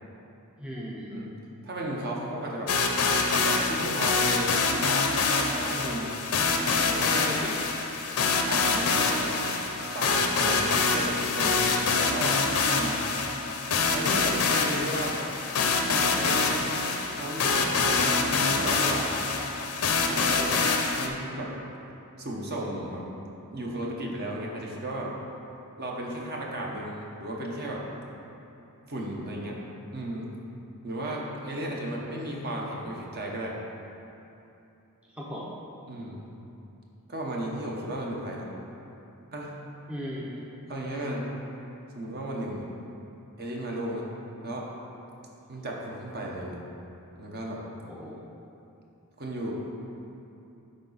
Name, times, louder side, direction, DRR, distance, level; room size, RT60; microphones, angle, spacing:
voice 1, 0.6-1.2 7.2-7.7 20.4-20.6 35.1-35.5 39.9-40.4 47.9-48.2, equal, 5° right, -5 dB, 0.6 m, -37 dB
voice 2, 1.6-2.7 3.4-5.1 5.3-6.2 6.8-7.3 8.5-9.3 9.9-12.4 12.7-13.0 13.9-15.2 15.7-16.6 17.1-19.1 20.1-20.4 21.0-21.5 22.2-23.0 23.5-25.1 25.8-27.8 28.9-29.6 29.9-30.3 30.8-33.6 35.9-36.2 37.1-38.5 39.3-39.6 40.7-41.3 41.9-42.7 43.4-44.1 44.4-44.7 45.5-46.7 47.2-47.6 49.2-49.5, right 1 dB, 45° right, -2 dB, 1.1 m, -34 dB
sound 1, 2.7-21.1, left 4 dB, 80° left, 0.6 m, -25 dB
10.5 x 4.2 x 4.1 m, 2.8 s
head